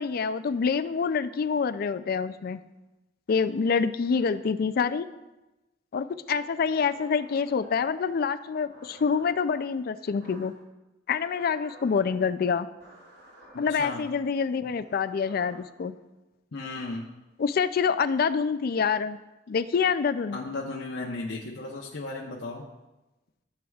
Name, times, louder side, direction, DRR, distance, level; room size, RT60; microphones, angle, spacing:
voice 1, 0.0-2.6 3.3-5.1 5.9-10.6 11.1-12.7 13.6-16.0 17.4-19.2 19.5-20.4, left 6 dB, 50° left, 12 dB, 0.4 m, -26 dB
sound 1, 6.3-8.0 8.7-9.6 10.2-10.6 11.1-12.0 12.8-13.7 14.8-15.6, right 1 dB, 90° right, 3.4 m, -51 dB
voice 2, 13.5-14.0 16.5-17.1 20.3-22.7, left 2 dB, 65° left, -2 dB, 0.9 m, -35 dB
14.0 x 7.6 x 2.4 m, 1.0 s
head